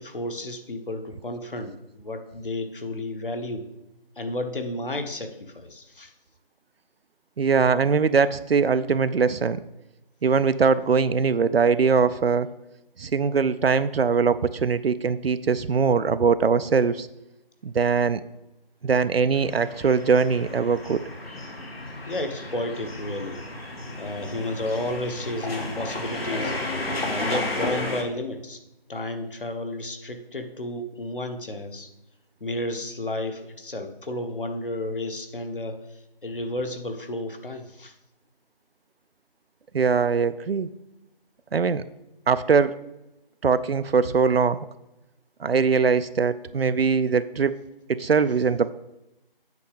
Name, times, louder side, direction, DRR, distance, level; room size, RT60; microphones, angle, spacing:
voice 1, 0.0-3.7 4.2-6.1 22.1-23.4 24.0-26.5 27.1-28.6 28.9-31.9 32.4-35.8 36.2-37.9, left 1 dB, 65° left, 6 dB, 1.3 m, -32 dB
voice 2, 7.4-9.6 10.2-12.5 13.0-17.1 17.6-18.2 18.8-21.0 39.7-40.7 41.5-41.8 42.3-42.8 43.4-44.7 45.4-47.6 47.9-48.7, right 5 dB, 90° right, 13 dB, 0.5 m, -21 dB
sound 1, 19.3-28.0, left 2 dB, 90° left, 1.9 m, -33 dB
8.3 x 6.0 x 5.0 m, 0.92 s
figure-of-eight pair, 175°, 29 cm